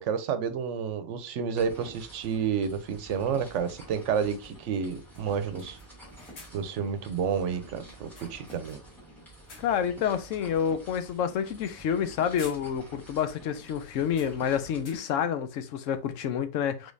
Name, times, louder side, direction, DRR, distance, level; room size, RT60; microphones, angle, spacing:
voice 1, 0.0-5.8 6.5-8.8, right 7 dB, 75° right, 1.0 m, -30 dB
sound 1, 1.6-14.8, right 1 dB, ahead, 2.4 m, -49 dB
sound 2, 4.7-4.9 5.1-6.8 7.9-9.0 9.3-10.0 10.4-10.6 11.9-12.1 12.4-13.1 13.4-13.5 14.0-15.3, left 2 dB, 60° left, 1.7 m, -51 dB
voice 2, 9.6-16.9, left 8 dB, 80° left, 1.0 m, -28 dB
5.1 x 3.9 x 2.6 m
omnidirectional pair, 1.3 m